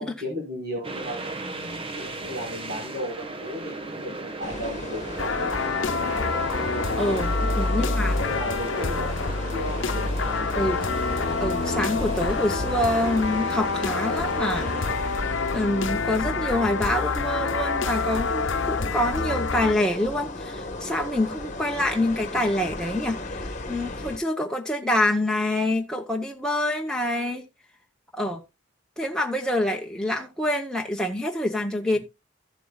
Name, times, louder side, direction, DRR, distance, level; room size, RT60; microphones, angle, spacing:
voice 1, 0.0-5.2 5.4-6.4 7.7-10.9 31.9-32.0, left 1 dB, 50° right, 5.1 m, -36 dB
sound 1, 0.8-15.0, right 2 dB, 25° right, 1.3 m, -37 dB
sound 2, 4.4-24.2, left 2 dB, 40° left, 1.3 m, -36 dB
sound 3, 5.2-19.7, left 4 dB, 65° left, 0.8 m, -27 dB
voice 2, 7.0-8.3 10.5-10.8 11.4-14.7 15.5-23.2 23.7-27.4 28.1-28.4 29.0-32.0, left 1 dB, 5° left, 0.8 m, -26 dB
14.5 x 7.6 x 2.3 m
head